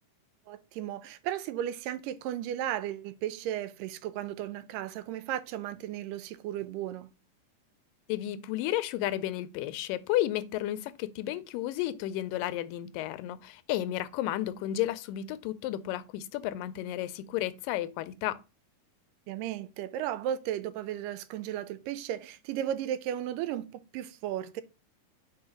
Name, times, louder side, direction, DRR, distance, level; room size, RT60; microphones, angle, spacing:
voice 1, 0.5-7.1 19.3-24.6, right 11 dB, 90° right, 2.2 m, -35 dB
voice 2, 8.1-18.4, left 13 dB, 90° left, 2.2 m, -32 dB
4.7 x 4.6 x 5.0 m
omnidirectional pair, 3.8 m